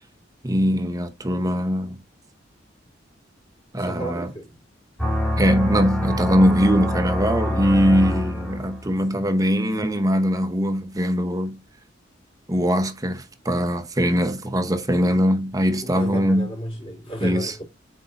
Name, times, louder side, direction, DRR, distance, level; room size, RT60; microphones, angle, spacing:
voice 1, 0.4-2.0 3.7-4.3 5.4-11.6 12.5-16.5 17.2-17.5, equal, 20° right, 0.9 m, -21 dB
voice 2, 3.8-4.5 15.8-17.6, right 1 dB, 30° left, 3.7 m, -33 dB
sound 1, 5.0-8.9, left 1 dB, 5° left, 2.2 m, -25 dB
8.0 x 4.6 x 2.6 m
head